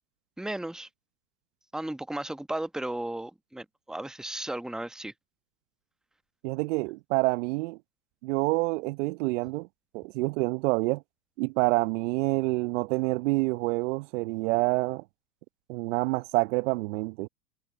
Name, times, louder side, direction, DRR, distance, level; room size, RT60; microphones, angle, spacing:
voice 1, 0.4-0.9 1.7-5.1, right 1 dB, ahead, 1.2 m, -35 dB
voice 2, 6.4-7.8 8.2-9.7 9.9-11.0 11.4-15.0 15.7-17.3, right 24 dB, 50° right, 0.9 m, -27 dB
hypercardioid pair, 100°, 46 cm